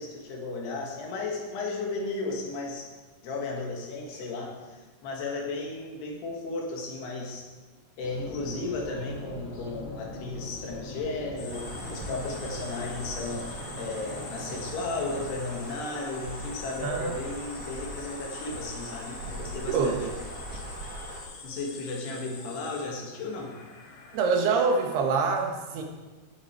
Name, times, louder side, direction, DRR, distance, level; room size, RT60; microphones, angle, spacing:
voice 1, 0.0-2.9 3.2-7.5 8.0-20.0 21.4-23.5 25.8-25.9, left 3 dB, 85° left, 0 dB, 4.0 m, -34 dB
sound 1, 8.0-15.3, left 1 dB, 50° left, 3.6 m, -42 dB
sound 2, 11.4-25.3, left 4 dB, 70° left, 3.3 m, -45 dB
sound 3, 11.5-21.2, right 1 dB, 40° right, 1.4 m, -41 dB
voice 2, 16.8-17.1 19.7-20.0 24.1-25.8, right 4 dB, 80° right, 2 dB, 3.4 m, -25 dB
17.0 x 8.1 x 4.6 m, 1.3 s
omnidirectional pair, 4.6 m